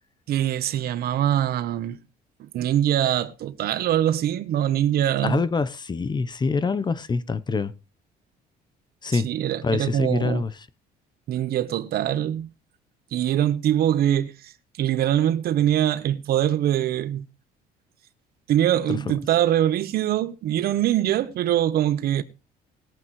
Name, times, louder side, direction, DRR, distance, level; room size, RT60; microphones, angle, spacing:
voice 1, 0.3-2.0 2.4-5.4 9.1-10.5 11.3-12.5 13.1-14.3 14.8-17.3 18.5-22.2, right 11 dB, 65° right, 1.1 m, -23 dB
voice 2, 5.2-7.7 9.0-9.3 9.6-10.5 18.9-19.2, left 4 dB, 25° left, 0.8 m, -25 dB
20.0 x 9.0 x 3.2 m
cardioid pair, 110°, 17 cm